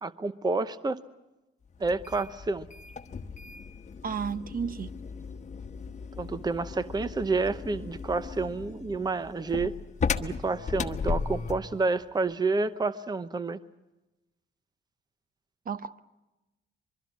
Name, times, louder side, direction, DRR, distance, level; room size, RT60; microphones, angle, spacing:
voice 1, 0.0-1.0 1.8-2.7 6.2-9.7 10.2-13.6, right 3 dB, 20° right, 13 dB, 0.8 m, -29 dB
sound 1, 1.8-11.7, left 5 dB, 35° left, 1.2 m, -36 dB
voice 2, 4.0-4.9 15.6-16.0, right 6 dB, 45° right, 12 dB, 1.0 m, -33 dB
24.0 x 23.0 x 7.3 m, 1.0 s
cardioid pair, 90°, 20 cm